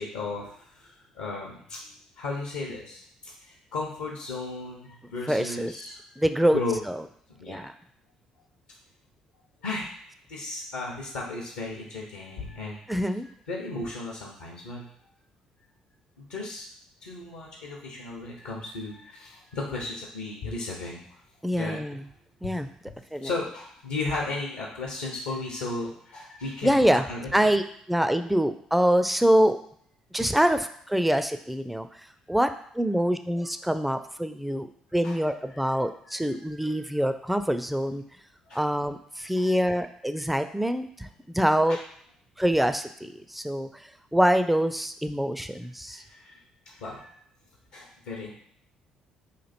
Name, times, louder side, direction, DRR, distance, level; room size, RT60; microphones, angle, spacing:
voice 1, 0.0-6.0 6.4-6.8 7.3-7.7 9.6-9.9 10.3-12.8 13.5-14.8 16.2-16.7 17.0-21.0 21.6-21.8 22.4-22.5 23.2-27.5 35.0-35.2 36.0-36.9 38.5-38.7 39.4-39.5 41.7-41.8 45.9-46.4 46.7-47.1 47.7-48.3, left 3 dB, 75° left, -2 dB, 0.7 m, -35 dB
voice 2, 5.3-5.7 6.2-6.6 6.9-7.0 7.5-7.7 12.9-13.3 21.4-22.1 22.4-22.7 23.1-23.3 26.6-27.0 27.3-27.6 27.9-29.6 30.1-31.9 32.3-32.5 32.7-34.7 34.9-38.0 38.6-41.1 41.3-41.8 42.4-43.7 44.1-46.0, equal, 5° right, 9 dB, 0.3 m, -25 dB
3.1 x 2.5 x 4.1 m, 0.66 s
figure-of-eight pair, 50°, 3 cm